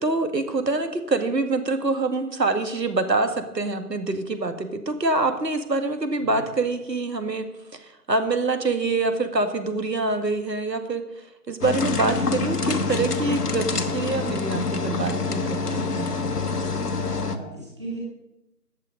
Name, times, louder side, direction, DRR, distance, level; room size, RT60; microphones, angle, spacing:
voice 1, 0.0-7.4 7.8-11.0 11.5-16.1, right 3 dB, 85° right, 8 dB, 2.0 m, -25 dB
sound 1, 11.6-17.4, left 3 dB, 70° left, 1.3 m, -26 dB
voice 2, 16.9-18.0, right 2 dB, 15° right, -5 dB, 2.1 m, -38 dB
14.5 x 9.1 x 5.2 m, 0.92 s
figure-of-eight pair, 180°, 49 cm